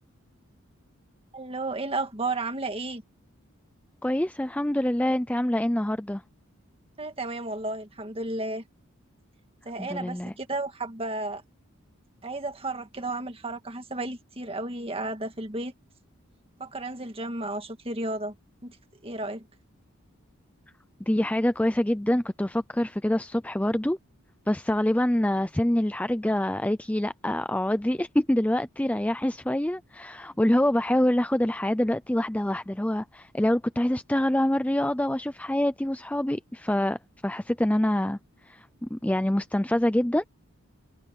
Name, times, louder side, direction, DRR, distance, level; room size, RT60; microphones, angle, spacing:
voice 1, 1.3-3.0 7.0-8.6 9.7-11.4 12.2-15.7 16.6-18.3 18.6-18.8 19.0-19.5, right 2 dB, 25° right, 1.8 m, -33 dB
voice 2, 4.0-6.2 9.8-10.3 21.0-24.0 24.5-38.2 38.5-40.2, left 1 dB, 5° left, 0.4 m, -25 dB
head